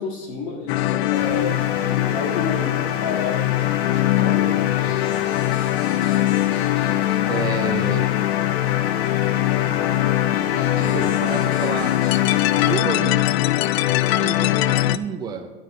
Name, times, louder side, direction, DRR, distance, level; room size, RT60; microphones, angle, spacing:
voice 1, 0.0-4.6, left 4 dB, 40° left, 0 dB, 2.0 m, -30 dB
sound 1, 0.7-15.0, left 15 dB, 80° left, 0.5 m, -21 dB
Water, 1.1-12.8, right 10 dB, 55° right, 0.8 m, -38 dB
voice 2, 7.3-8.1 10.8-12.0 12.6-13.3 13.8-15.5, right 6 dB, 15° right, 3 dB, 0.6 m, -30 dB
11.0 x 10.0 x 3.2 m, 1.2 s
supercardioid pair, 170°, 31 cm